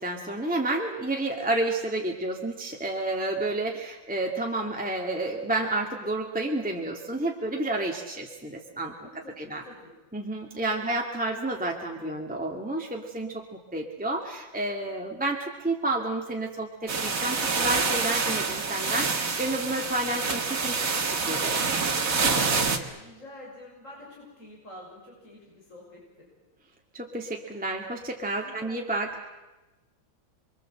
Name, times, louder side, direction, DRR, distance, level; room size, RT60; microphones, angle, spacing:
voice 1, 0.0-9.1 9.4-9.6 10.1-21.7 26.9-29.1, right 2 dB, 5° right, 0 dB, 2.1 m, -30 dB
voice 2, 9.0-9.9 10.7-10.9 22.4-26.3 28.3-28.7, left 1 dB, 40° left, -3 dB, 6.4 m, -47 dB
sound 1, 16.9-22.8, right 4 dB, 45° right, 2.1 m, -27 dB
29.0 x 22.5 x 7.9 m, 1.1 s
omnidirectional pair, 2.1 m